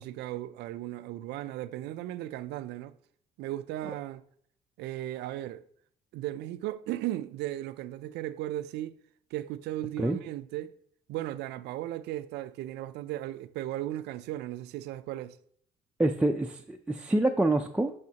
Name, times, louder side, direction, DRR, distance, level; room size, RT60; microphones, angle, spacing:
voice 1, 0.0-2.9 3.4-4.2 4.8-5.6 6.1-9.0 9.3-10.7 11.1-15.4, right 14 dB, 80° right, 0.5 m, -36 dB
voice 2, 16.0-17.9, right 2 dB, 5° right, 0.4 m, -26 dB
10.5 x 6.2 x 2.9 m
cardioid pair, 110°, 17 cm